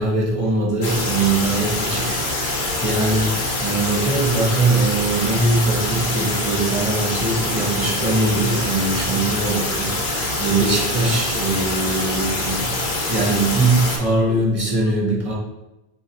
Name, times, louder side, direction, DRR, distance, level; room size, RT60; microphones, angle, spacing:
voice 1, 0.0-12.8 13.1-15.3, right 2 dB, 35° right, -4 dB, 0.8 m, -21 dB
sound 1, 0.8-14.0, left 2 dB, 55° left, 0.8 m, -24 dB
5.6 x 2.2 x 2.5 m, 0.96 s
omnidirectional pair, 1.0 m